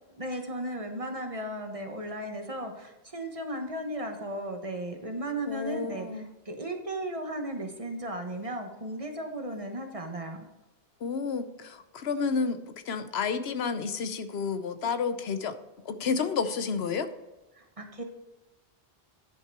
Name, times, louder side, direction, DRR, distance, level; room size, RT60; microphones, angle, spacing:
voice 1, 0.1-10.5 17.5-18.0, right 1 dB, 35° right, 4 dB, 1.2 m, -35 dB
voice 2, 5.5-6.3 11.0-15.6 15.9-17.1, left 5 dB, 85° left, 10 dB, 1.0 m, -30 dB
10.5 x 5.8 x 4.6 m, 1.0 s
omnidirectional pair, 1.0 m